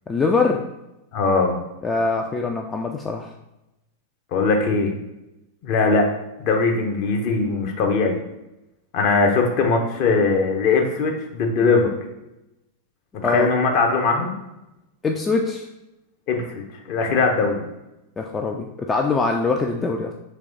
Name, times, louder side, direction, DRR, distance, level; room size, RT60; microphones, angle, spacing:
voice 1, 0.1-0.7 1.8-3.3 13.2-13.5 15.0-15.7 18.2-20.1, left 4 dB, 15° left, 2 dB, 0.3 m, -23 dB
voice 2, 1.1-1.6 4.3-4.9 5.6-6.1 6.4-8.2 8.9-11.9 13.2-14.3 16.3-17.6, left 4 dB, 45° left, 2 dB, 0.7 m, -20 dB
3.4 x 3.0 x 3.8 m, 0.93 s
figure-of-eight pair, 90°, 0 cm